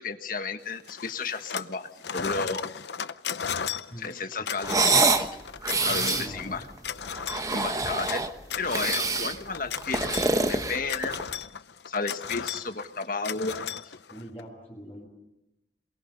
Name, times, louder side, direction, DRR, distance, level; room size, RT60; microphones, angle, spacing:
voice 1, 0.0-2.7 4.0-5.4 5.8-6.6 7.5-8.2 8.6-11.2 11.9-13.9, left 4 dB, 50° left, 7 dB, 1.6 m, -33 dB
sound 1, 0.9-1.8 2.0-14.4, left 7 dB, 70° left, 0.7 m, -35 dB
voice 2, 3.9-4.5 5.8-6.6 14.1-15.1, equal, 10° left, -6 dB, 6.0 m, -42 dB
sound 2, 4.6-5.3 5.6-6.3 7.2-8.3 8.7-9.4 9.8-11.3, right 3 dB, 20° right, 1.1 m, -25 dB
27.5 x 22.5 x 5.4 m, 0.89 s
head